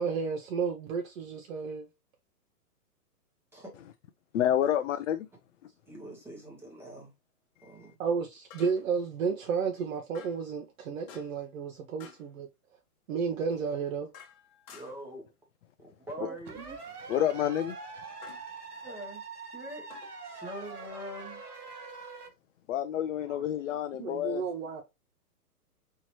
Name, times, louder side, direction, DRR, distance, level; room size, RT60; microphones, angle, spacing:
voice 1, 0.0-1.9 8.0-12.1 13.1-14.1 16.2-16.3 24.0-24.8, right 5 dB, 60° right, 0.8 m, -32 dB
voice 2, 4.3-5.3 17.1-17.8 22.7-24.4, left 10 dB, 55° left, 0.5 m, -28 dB
sound 1, 4.8-4.9 8.5-9.0 10.1-10.5 11.1-11.5 12.0-12.3 13.5-15.1 16.6-16.9 18.2-18.5 19.9-20.9, left 7 dB, 30° left, 0.9 m, -53 dB
voice 3, 5.8-7.1 7.6-8.0 14.7-15.3 15.8-16.6 18.8-19.9 20.2-21.4 23.0-23.5, equal, 5° right, 0.9 m, -44 dB
sound 2, 16.5-22.3, right 4 dB, 80° right, 2.1 m, -44 dB
4.5 x 2.9 x 2.9 m
hypercardioid pair, 145°, 46 cm